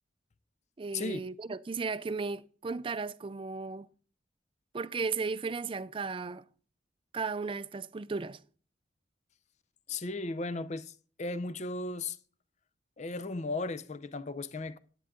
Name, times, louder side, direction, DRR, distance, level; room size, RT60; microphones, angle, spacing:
voice 1, 0.8-3.9 4.7-6.4 7.1-8.4, right 4 dB, 30° right, 0.4 m, -35 dB
voice 2, 9.9-12.2 13.0-14.8, left 3 dB, 40° left, 0.6 m, -36 dB
10.5 x 9.5 x 3.7 m
head